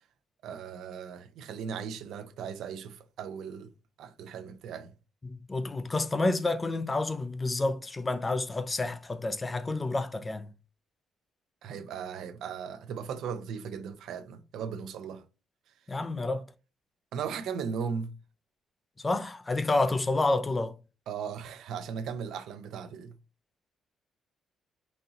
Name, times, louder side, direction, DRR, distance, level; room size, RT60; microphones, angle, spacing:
voice 1, 0.4-3.7 4.0-4.9 11.6-15.2 17.1-18.1 21.1-23.1, right 6 dB, 80° right, 0.5 m, -37 dB
voice 2, 5.2-10.5 15.9-16.4 19.0-20.8, left 2 dB, 20° left, 0.4 m, -29 dB
4.1 x 2.7 x 3.6 m
cardioid pair, 105°, 0 cm